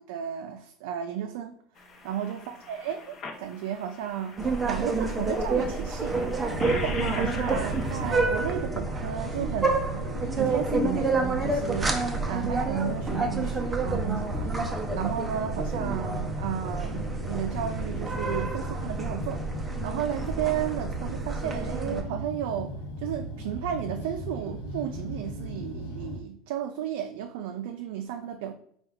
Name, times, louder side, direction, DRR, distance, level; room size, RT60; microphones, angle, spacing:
voice 1, 0.1-1.6 2.0-6.2 6.7-10.1 10.3-12.0 12.3-14.5 14.9-19.4 19.8-28.5, right 9 dB, 80° right, 0.3 m, -33 dB
sound 1, 1.8-8.1, left 4 dB, 30° left, 0.7 m, -42 dB
sound 2, 4.4-22.0, right 3 dB, 10° right, 0.5 m, -29 dB
sound 3, 6.5-26.2, equal, 85° left, 0.9 m, -36 dB
4.4 x 2.3 x 3.5 m
cardioid pair, 155°, 0 cm